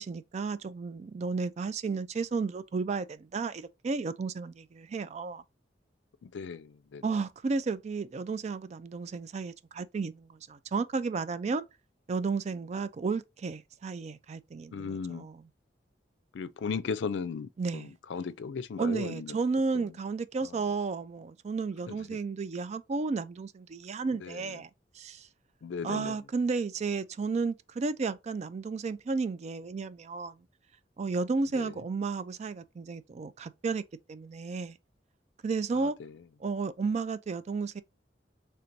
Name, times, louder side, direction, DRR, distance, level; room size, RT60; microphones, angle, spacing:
voice 1, 0.0-5.4 7.0-11.6 12.1-14.9 15.1-15.4 17.6-17.9 18.8-24.7 25.0-25.3 25.8-30.4 31.0-33.8 34.1-34.8 35.4-36.0 36.4-37.8, right 4 dB, 40° right, 0.3 m, -33 dB
voice 2, 6.2-7.0 14.7-15.3 16.3-19.4 19.7-20.0 20.4-20.6 21.9-22.2 24.2-24.6 25.6-26.2 31.5-31.8 35.7-36.2, left 5 dB, 75° left, 0.4 m, -37 dB
3.3 x 2.6 x 4.4 m
head